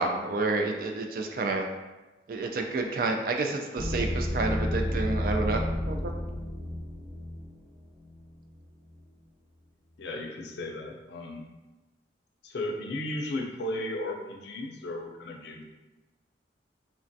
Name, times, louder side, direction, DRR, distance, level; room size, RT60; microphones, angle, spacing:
voice 1, 0.0-1.6 2.3-5.6 5.9-6.1, right 3 dB, 50° right, 4 dB, 0.3 m, -29 dB
sound 1, 3.8-8.3, left 1 dB, 15° right, 1.0 m, -31 dB
voice 2, 10.0-11.4 12.4-15.6, left 1 dB, 75° left, 1 dB, 0.4 m, -35 dB
3.2 x 2.2 x 2.6 m, 1.1 s
head